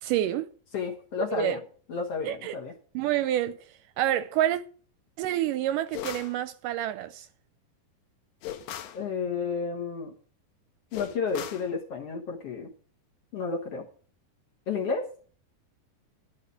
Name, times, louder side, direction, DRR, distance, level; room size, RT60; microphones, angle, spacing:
voice 1, 0.0-0.5 1.3-1.6 2.3-2.6 2.9-3.6 4.0-4.6 5.2-7.3, right 12 dB, 80° right, 2.0 m, -28 dB
voice 2, 0.7-1.6 1.9-2.7 8.9-10.1 10.9-12.7 13.3-13.9 14.7-15.1, left 5 dB, 55° left, 2.0 m, -31 dB
sound 1, 5.9-6.4 8.4-9.0 10.9-11.7, left 11 dB, 85° left, 2.6 m, -38 dB
12.5 x 5.0 x 8.3 m
omnidirectional pair, 4.1 m